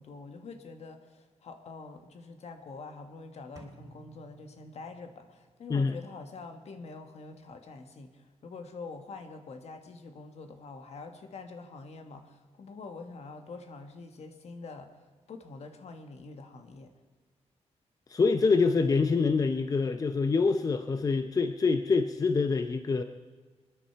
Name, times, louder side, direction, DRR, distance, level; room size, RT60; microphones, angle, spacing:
voice 1, 0.0-16.9, left 3 dB, 65° left, 6 dB, 1.5 m, -45 dB
sound 1, 3.6-5.4, right 2 dB, 25° right, 2.9 m, -54 dB
voice 2, 18.1-23.0, left 4 dB, 30° left, 8 dB, 0.6 m, -25 dB
27.0 x 10.0 x 4.6 m, 1.4 s
wide cardioid pair, 140°, 12 cm